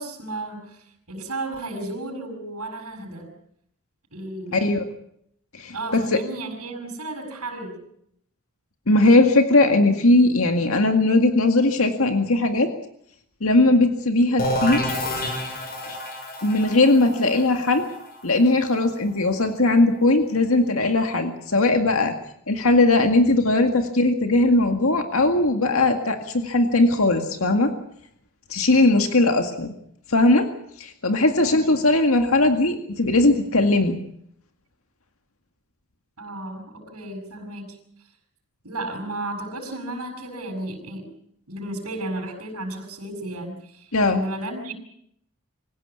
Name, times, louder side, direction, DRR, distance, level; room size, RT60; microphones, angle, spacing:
voice 1, 0.0-3.3 4.1-4.7 5.7-7.8 28.7-29.0 31.4-31.7 36.2-37.8 38.6-41.1 41.5-44.7, right 2 dB, 85° right, -1 dB, 7.5 m, -33 dB
voice 2, 4.5-4.8 5.5-6.2 8.9-12.7 13.4-14.9 15.9-16.0 16.4-17.8 18.2-22.1 22.5-27.7 28.5-29.7 30.1-30.5 30.8-34.0 43.9-44.2, left 2 dB, 70° left, 5 dB, 2.0 m, -19 dB
sound 1, 14.4-20.0, left 1 dB, 45° left, 6.2 m, -30 dB
26.0 x 16.5 x 8.5 m, 0.72 s
head